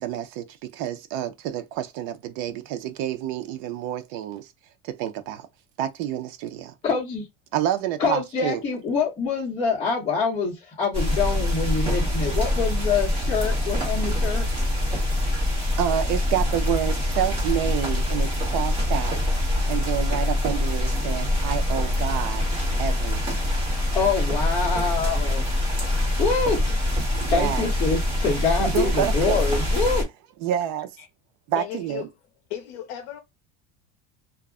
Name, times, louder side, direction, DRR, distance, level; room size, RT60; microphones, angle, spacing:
voice 1, 0.0-4.5 4.8-5.5 5.8-6.7 7.5-8.6 15.8-19.2 19.7-22.4 22.8-23.5 27.2-27.7 28.6-29.4 30.4-30.9 31.5-32.1, right 11 dB, 60° right, 0.6 m, -28 dB
voice 2, 6.8-7.2 8.0-14.5 23.9-25.4 26.2-26.6 27.3-30.0, left 4 dB, 20° left, 0.7 m, -25 dB
sound 1, 10.9-30.0, left 1 dB, 15° right, 1.1 m, -24 dB
voice 3, 31.6-32.1 32.5-33.2, left 11 dB, 70° left, 0.6 m, -35 dB
2.3 x 2.0 x 3.5 m
cardioid pair, 170°, 31 cm